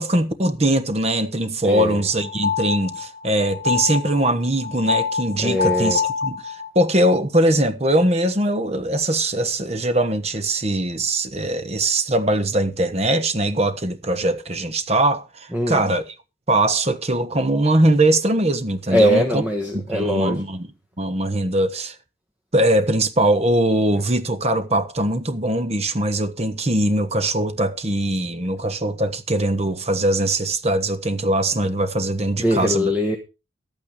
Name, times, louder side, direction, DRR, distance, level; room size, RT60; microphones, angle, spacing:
voice 1, 0.0-16.0 16.5-19.4 19.7-20.7 21.0-21.9 22.5-32.9, right 1 dB, 30° right, 1.2 m, -21 dB
voice 2, 1.6-2.0 5.4-6.0 15.5-15.8 18.9-20.4 32.4-33.2, equal, 10° right, 1.3 m, -21 dB
sound 1, 1.7-6.9, left 6 dB, 65° right, 3.6 m, -26 dB
12.5 x 8.7 x 5.0 m
head